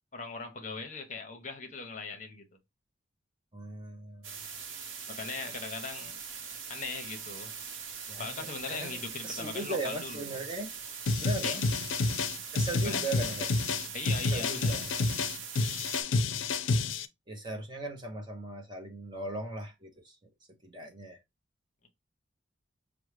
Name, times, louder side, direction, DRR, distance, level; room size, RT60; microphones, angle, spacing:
voice 1, 0.0-2.5 5.1-6.2 6.7-7.5 8.2-10.4 11.4-11.6 12.8-13.0 13.9-14.8, left 4 dB, 40° left, 0.8 m, -39 dB
voice 2, 3.5-4.3 5.6-5.7 8.1-10.7 11.2-11.6 12.5-13.6 14.3-15.1 17.3-20.3 20.6-21.2, right 2 dB, 25° right, 0.7 m, -39 dB
sound 1, 4.2-16.0, right 6 dB, 80° right, 0.8 m, -42 dB
sound 2, 11.1-17.1, left 3 dB, 75° left, 0.4 m, -29 dB
6.0 x 2.0 x 3.1 m
head